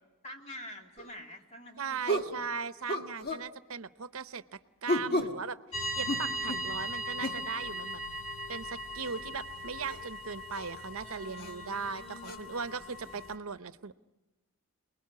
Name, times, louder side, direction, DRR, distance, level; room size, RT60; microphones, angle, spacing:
voice 1, 0.2-2.5 11.0-12.5 12.8-13.2, left 1 dB, 30° left, 2 dB, 2.5 m, -48 dB
sound 1, 1.0-1.1 2.1-2.4 2.9-3.5 4.9-5.4 6.1-6.7 7.2-7.5 9.1-9.2 9.9-10.0 10.5-10.7 11.4-11.5 12.2-12.4, equal, 50° left, 1.5 m, -32 dB
voice 2, 1.8-5.6 6.0-8.0 8.5-13.9, right 5 dB, 90° right, 13 dB, 0.8 m, -38 dB
sound 2, 5.7-13.4, right 1 dB, 80° left, 2.6 m, -39 dB
28.5 x 20.5 x 9.5 m, 1.1 s
head